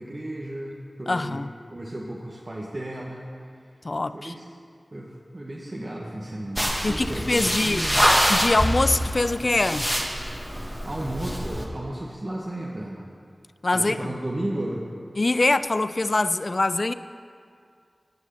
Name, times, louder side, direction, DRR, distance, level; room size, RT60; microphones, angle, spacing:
voice 1, 0.0-1.4 1.7-3.3 3.6-3.7 4.1-4.4 4.9-8.1 10.8-13.1 13.7-14.8, right 1 dB, 40° right, -3 dB, 1.3 m, -34 dB
voice 2, 1.1-1.5 3.8-4.3 6.8-7.9 8.3-9.9 13.6-14.1 15.2-16.9, left 2 dB, 50° left, 13 dB, 0.3 m, -23 dB
sound 1, 6.6-11.6, equal, 5° right, 1.7 m, -25 dB
17.5 x 6.3 x 6.9 m, 2.2 s
wide cardioid pair, 65°, 0 cm